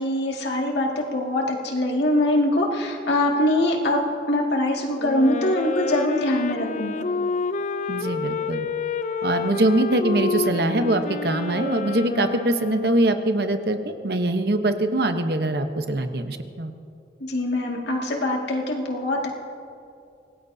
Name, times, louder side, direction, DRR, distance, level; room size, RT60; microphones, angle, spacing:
voice 1, 0.0-4.0 4.3-7.0 17.2-19.3, left 1 dB, 80° left, -1 dB, 2.2 m, -23 dB
Wind instrument woodwind instrument, 5.0-13.4, left 4 dB, 45° left, 0.4 m, -29 dB
voice 2, 7.9-8.7 9.2-13.8 14.0-16.7, right 1 dB, 65° right, 7 dB, 1.0 m, -23 dB
26.0 x 18.5 x 2.8 m, 2.5 s
head